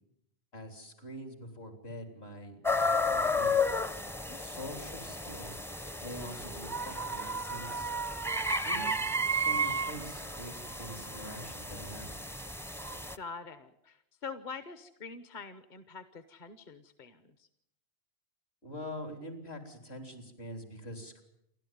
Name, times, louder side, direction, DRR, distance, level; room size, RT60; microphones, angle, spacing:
voice 1, 0.5-3.6 4.4-5.6 6.0-7.9 8.4-12.1 18.6-21.2, equal, 75° left, 5 dB, 3.9 m, -45 dB
sound 1, 2.6-13.2, left 1 dB, 5° left, 0.5 m, -33 dB
voice 2, 4.3-4.8 13.2-17.5, left 5 dB, 50° left, 11 dB, 1.1 m, -45 dB
29.0 x 12.0 x 9.3 m, 0.80 s
omnidirectional pair, 1.1 m